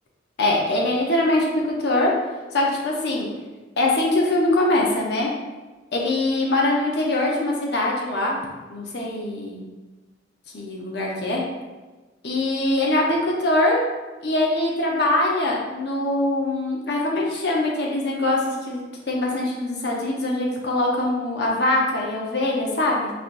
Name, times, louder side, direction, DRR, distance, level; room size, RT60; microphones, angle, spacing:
voice 1, 0.4-1.5 1.8-2.1 2.5-3.3 3.8-5.3 5.9-8.4 8.7-9.6 10.5-11.4 12.2-13.8 14.2-23.1, left 2 dB, 60° left, -2 dB, 0.8 m, -23 dB
4.3 x 3.3 x 2.6 m, 1.2 s
head